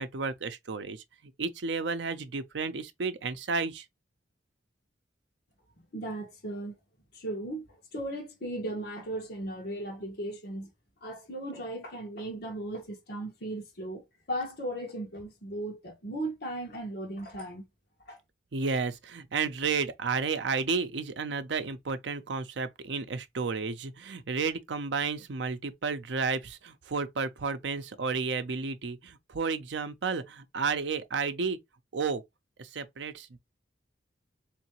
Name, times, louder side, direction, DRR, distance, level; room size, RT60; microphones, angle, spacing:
voice 1, 0.0-3.8 18.5-31.6 31.9-32.2 32.6-33.4, right 4 dB, 70° right, 0.6 m, -32 dB
voice 2, 5.9-6.8 7.1-10.7 11.0-17.6 18.1-18.2, right 1 dB, 60° left, 1.5 m, -37 dB
3.7 x 3.2 x 3.0 m
head